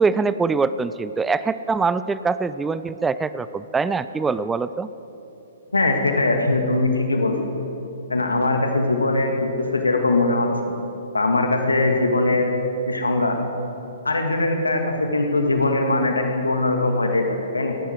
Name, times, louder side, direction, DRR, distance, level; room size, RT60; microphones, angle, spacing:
voice 1, 0.0-4.9, right 4 dB, 10° right, 14 dB, 0.3 m, -23 dB
voice 2, 5.7-7.4 8.1-10.5 11.1-12.5 12.9-13.4 14.1-17.8, left 2 dB, 90° left, 4 dB, 1.9 m, -21 dB
18.0 x 11.5 x 4.7 m, 3.0 s
figure-of-eight pair, 125°, 0 cm